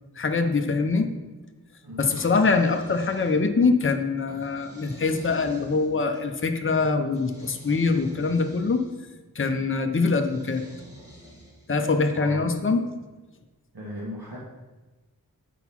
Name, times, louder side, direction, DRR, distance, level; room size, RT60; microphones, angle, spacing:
voice 1, 0.2-1.1 2.0-8.8 9.3-10.6 11.7-12.9, left 4 dB, 35° left, 5 dB, 0.7 m, -23 dB
sound 1, 2.0-3.7 4.3-6.3 7.1-9.0 10.2-11.8, equal, 40° right, 2.0 m, -47 dB
voice 2, 12.1-12.5 13.7-14.4, equal, 70° right, -7 dB, 1.9 m, -37 dB
8.1 x 3.9 x 6.0 m, 1.2 s
wide cardioid pair, 60°, 38 cm